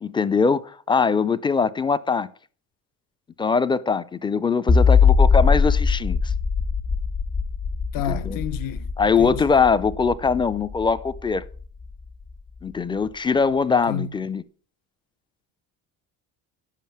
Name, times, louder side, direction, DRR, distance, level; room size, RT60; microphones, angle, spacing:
voice 1, 0.0-2.3 3.4-6.3 8.1-8.4 9.0-11.4 12.6-14.4, left 5 dB, 15° left, 0.4 m, -22 dB
sound 1, 4.7-11.9, left 5 dB, 35° left, 1.2 m, -21 dB
voice 2, 7.9-8.9 9.2-9.5 13.9-14.1, left 8 dB, 60° left, 1.0 m, -29 dB
10.5 x 7.5 x 7.1 m
cardioid pair, 160°, 38 cm